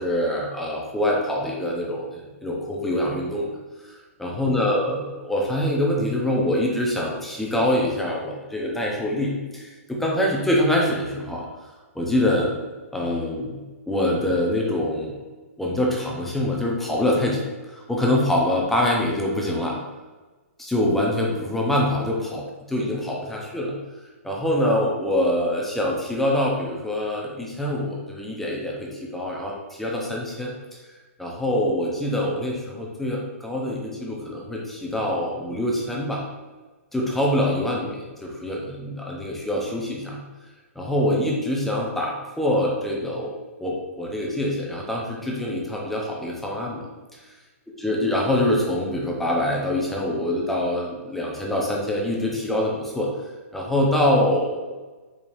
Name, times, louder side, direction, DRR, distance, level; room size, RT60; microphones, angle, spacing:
voice 1, 0.0-3.5 3.8-11.5 11.9-12.6 12.9-13.6 13.9-15.2 15.6-17.5 17.7-19.8 20.6-23.7 24.2-30.5 31.2-36.2 36.9-40.2 40.8-43.3 43.6-46.9 47.8-53.1 53.5-54.7, left 1 dB, 5° left, -3 dB, 0.6 m, -25 dB
4.8 x 2.7 x 2.6 m, 1.2 s
hypercardioid pair, 145°, 8 cm